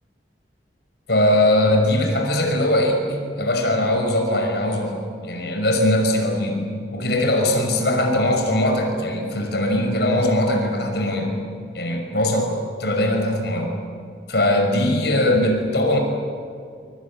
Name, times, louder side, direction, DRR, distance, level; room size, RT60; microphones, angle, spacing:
voice 1, 1.1-11.4 11.7-13.7 14.3-16.0, left 1 dB, 65° left, 3 dB, 5.8 m, -21 dB
25.5 x 25.5 x 8.8 m, 2.3 s
head